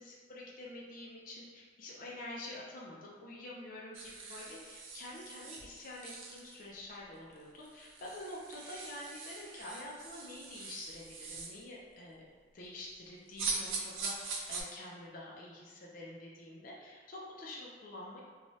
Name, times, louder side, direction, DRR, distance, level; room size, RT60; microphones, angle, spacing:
voice 1, 0.0-12.2 12.5-18.2, left 1 dB, 45° left, -4 dB, 0.4 m, -47 dB
sound 1, 3.9-6.7 7.3-7.4 7.6-11.6 13.4-14.6, right 4 dB, 90° right, 0.5 m, -42 dB
3.0 x 2.2 x 2.7 m, 1.5 s
head